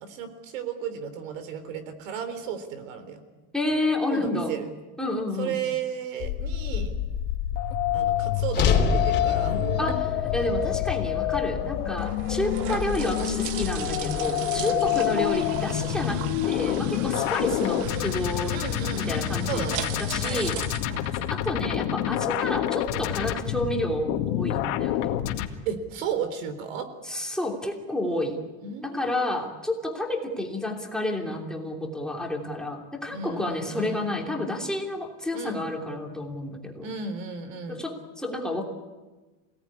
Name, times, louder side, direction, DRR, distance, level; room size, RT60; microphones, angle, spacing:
voice 1, 0.0-3.2 4.1-4.7 5.4-7.0 7.9-10.0 14.6-14.8 18.5-19.9 20.2-21.1 25.7-26.9 28.6-29.4 33.1-34.1 35.3-35.7 36.8-37.8, right 6 dB, 80° right, 11 dB, 3.8 m, -34 dB
voice 2, 3.5-4.5 5.0-5.5 9.8-10.0 10.3-18.6 18.9-19.7 20.0-20.6 21.1-25.2 27.0-28.4 28.8-36.9 37.7-38.6, left 1 dB, ahead, 0 dB, 3.0 m, -30 dB
sound 1, 6.2-25.5, left 12 dB, 65° left, 2.2 m, -28 dB
sound 2, 8.5-12.8, left 6 dB, 30° left, 3.3 m, -28 dB
sound 3, 11.5-21.8, right 10 dB, 50° right, 1.4 m, -38 dB
28.0 x 18.0 x 9.8 m, 1.2 s
supercardioid pair, 155°, 38 cm